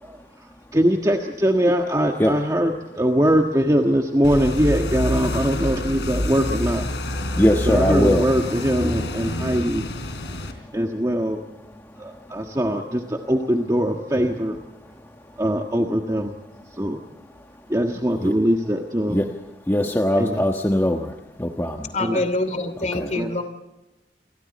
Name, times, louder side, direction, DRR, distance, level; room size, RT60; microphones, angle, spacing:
voice 1, 0.0-6.9 7.6-9.9 10.7-11.4 12.0-14.6 15.4-16.3 16.6-17.0 17.7-19.2 20.1-20.4 22.0-22.3 23.1-23.4, equal, 20° right, 2 dB, 1.5 m, -22 dB
sound 1, 4.2-10.5, left 1 dB, 75° left, 3.8 m, -27 dB
voice 2, 7.4-8.2 18.2-18.3 19.1-19.2 19.7-21.1 21.4-21.9 22.9-23.1, equal, 15° left, 2 dB, 1.2 m, -20 dB
voice 3, 21.9-23.4, left 2 dB, 40° left, 10 dB, 2.7 m, -25 dB
29.0 x 24.0 x 4.3 m, 1.0 s
head